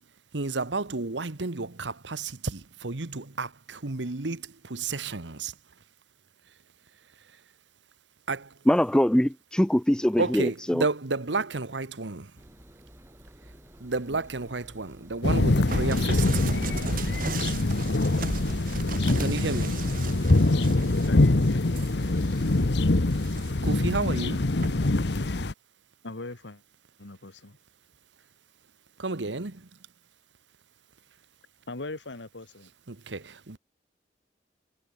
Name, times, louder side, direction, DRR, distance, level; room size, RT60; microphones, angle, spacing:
voice 1, 0.3-5.5 8.3-8.5 10.2-12.3 13.8-16.2 19.2-19.8 23.6-24.5 29.0-29.6 32.9-33.6, right 3 dB, 85° right, 1.4 m, -31 dB
voice 2, 8.7-10.9, equal, 5° left, 0.4 m, -23 dB
Engine, 12.4-22.5, equal, 15° right, 5.4 m, -52 dB
sound 1, 15.2-25.5, left 2 dB, 65° left, 1.0 m, -24 dB
sound 2, 15.7-22.7 23.1-23.8 24.6-24.9, right 3 dB, 50° right, 1.5 m, -36 dB
voice 3, 21.0-21.8 26.0-26.6 27.0-27.6 31.7-32.7, left 2 dB, 90° left, 1.8 m, -40 dB
head